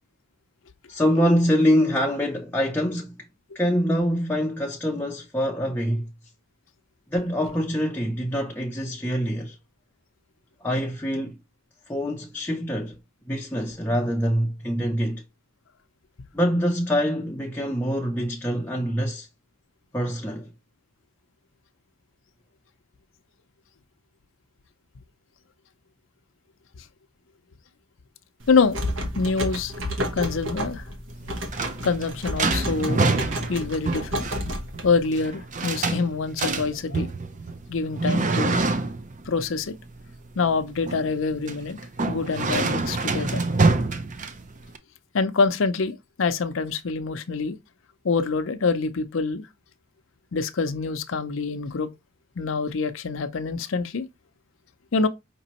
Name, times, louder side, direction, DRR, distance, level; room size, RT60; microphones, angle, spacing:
voice 1, 0.9-3.1 3.5-6.1 7.1-9.6 10.6-11.4 11.9-13.0 13.3-15.2 16.3-19.3 19.9-20.5, equal, 10° left, 0.5 m, -25 dB
sound 1, 28.4-35.2, equal, 70° right, 1.2 m, -31 dB
voice 2, 28.5-28.8 29.1-29.7 30.1-30.8 31.8-33.1 33.5-34.3 34.8-37.1 37.7-38.7 39.3-39.7 40.4-41.8 42.1-43.4 45.1-47.6 48.0-49.5 50.3-51.9 52.4-54.1 54.9-55.1, left 4 dB, 70° left, 0.6 m, -25 dB
sound 2, 31.1-44.8, right 3 dB, 40° right, 0.6 m, -27 dB
5.2 x 2.9 x 2.9 m
head